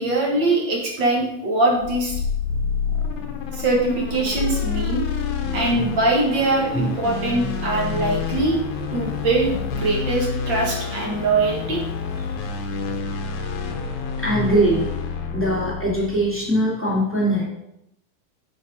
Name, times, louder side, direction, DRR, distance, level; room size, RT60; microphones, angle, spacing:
voice 1, 0.0-2.1 3.5-5.1 5.5-8.6 8.9-11.8, right 2 dB, 55° right, 0 dB, 1.4 m, -22 dB
sound 1, 1.8-16.4, left 5 dB, 85° left, 2.8 m, -28 dB
voice 2, 5.4-6.0 6.7-7.5 7.9-8.1 14.2-14.9 15.3-17.4, right 1 dB, 5° left, -5 dB, 1.5 m, -23 dB
10.0 x 5.9 x 4.2 m, 0.82 s
omnidirectional pair, 4.0 m